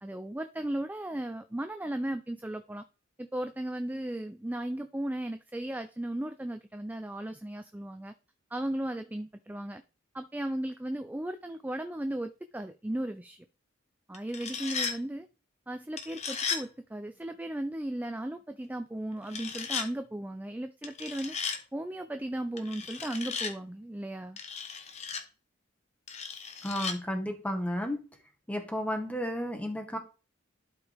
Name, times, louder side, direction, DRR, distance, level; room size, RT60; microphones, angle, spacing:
voice 1, 0.0-2.8 3.2-8.1 8.5-9.8 10.1-13.4 14.1-15.3 15.7-21.4 21.7-24.4, right 1 dB, 10° right, 0.3 m, -36 dB
sound 1, 14.1-15.0 16.0-16.6 19.3-19.9 20.8-21.6 22.6-23.5 24.4-25.2 26.1-27.0, left 6 dB, 35° left, 1.0 m, -35 dB
voice 2, 26.6-28.0 28.5-30.0, equal, 5° left, 1.5 m, -32 dB
11.5 x 4.9 x 3.4 m
head